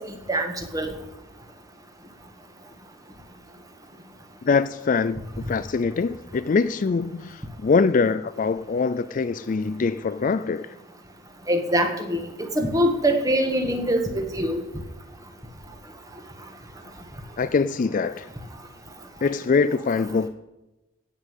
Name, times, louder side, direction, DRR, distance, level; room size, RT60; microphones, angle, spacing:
voice 1, 0.3-0.9 11.5-14.6, right 1 dB, 15° right, 1.5 m, -23 dB
voice 2, 4.4-10.8 17.4-18.3 19.2-20.3, left 4 dB, 40° left, 0.4 m, -23 dB
16.0 x 5.5 x 8.0 m
head